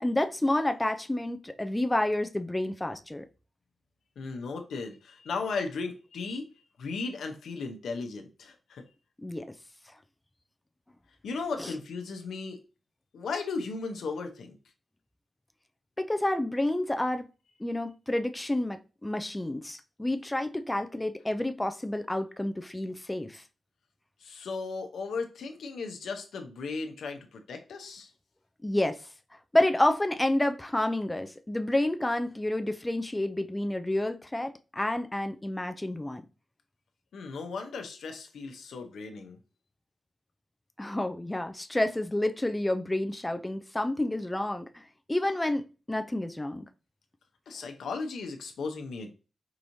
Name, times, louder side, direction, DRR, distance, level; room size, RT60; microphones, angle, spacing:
voice 1, 0.0-3.2 9.2-9.5 11.6-11.7 16.0-17.2 17.6-23.4 28.6-29.0 29.5-36.2 40.8-44.8 45.1-46.7, left 1 dB, 15° left, 0.4 m, -29 dB
voice 2, 4.2-6.5 6.8-8.8 11.2-12.6 13.1-14.6 24.2-28.1 37.1-39.4 47.5-49.1, left 4 dB, 90° left, 0.7 m, -36 dB
4.7 x 3.0 x 2.6 m
cardioid pair, 80°, 0 cm